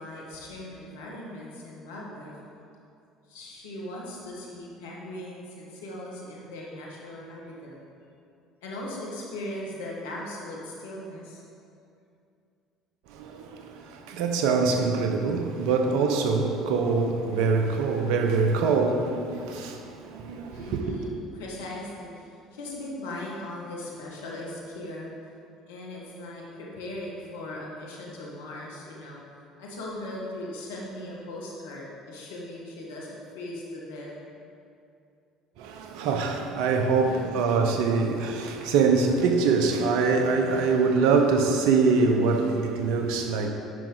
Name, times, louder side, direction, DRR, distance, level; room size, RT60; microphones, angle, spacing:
voice 1, 0.0-2.3 3.3-7.8 8.6-11.4 20.5-25.1 25.7-29.2 29.6-34.1 37.0-37.4, left 1 dB, 80° left, 1.6 m, -39 dB
voice 2, 13.1-21.0 35.6-43.5, right 4 dB, 70° right, 0.8 m, -24 dB
9.3 x 6.0 x 4.0 m
hypercardioid pair, 65°, 0 cm